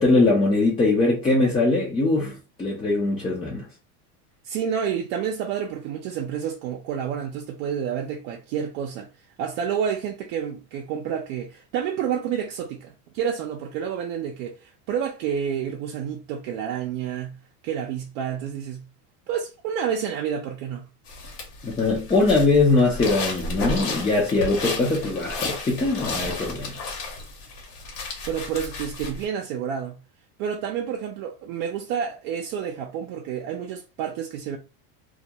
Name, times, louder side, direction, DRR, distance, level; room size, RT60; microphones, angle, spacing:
voice 1, 0.0-3.7 21.6-26.7, left 3 dB, 15° left, 0.4 m, -21 dB
voice 2, 4.4-9.1 9.4-17.4 17.6-18.8 19.3-20.9 28.3-30.0 30.4-34.6, right 8 dB, 65° right, 0.6 m, -29 dB
sound 1, 21.1-29.3, left 3 dB, 70° left, 1.1 m, -33 dB
2.4 x 2.1 x 2.7 m
supercardioid pair, 125°, 46 cm